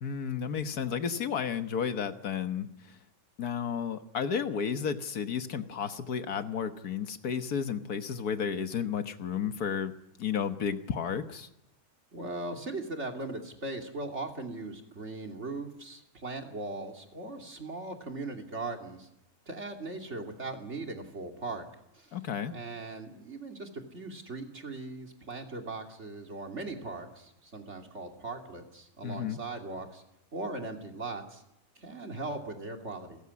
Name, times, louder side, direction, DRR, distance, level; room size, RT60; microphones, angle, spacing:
voice 1, 0.0-3.0 3.4-9.9 10.2-11.5 22.1-22.5 29.0-29.4, left 7 dB, 85° left, 9 dB, 1.8 m, -32 dB
voice 2, 12.1-19.1 19.5-21.6 21.9-22.2 22.5-30.0 30.3-31.4 31.8-33.2, right 2 dB, 50° right, 3 dB, 3.1 m, -39 dB
30.0 x 14.5 x 9.6 m, 0.85 s
omnidirectional pair, 1.6 m